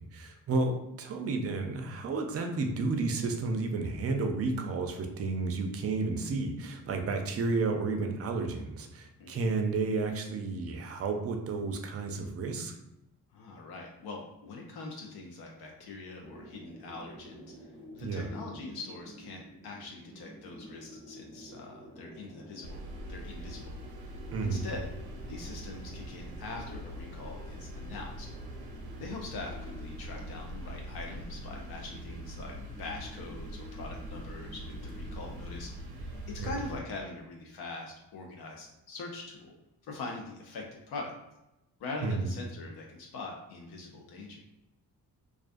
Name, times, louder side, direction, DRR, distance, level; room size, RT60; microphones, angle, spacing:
voice 1, 0.0-12.8 18.0-18.3 24.3-24.6 36.4-36.6 42.0-42.3, right 3 dB, 40° right, 5 dB, 0.4 m, -32 dB
voice 2, 13.3-17.5 17.9-22.8 23.1-23.8 24.4-24.9 25.3-28.3 29.0-35.7 36.0-36.1 36.4-39.5 39.9-41.1 41.8-44.4, left 3 dB, 75° left, 0 dB, 0.6 m, -43 dB
sound 1, 16.2-36.0, equal, 15° left, 0.8 m, -51 dB
sound 2, 22.6-36.8, equal, 90° right, 0.6 m, -43 dB
2.3 x 2.2 x 2.5 m, 0.89 s
cardioid pair, 85°, 38 cm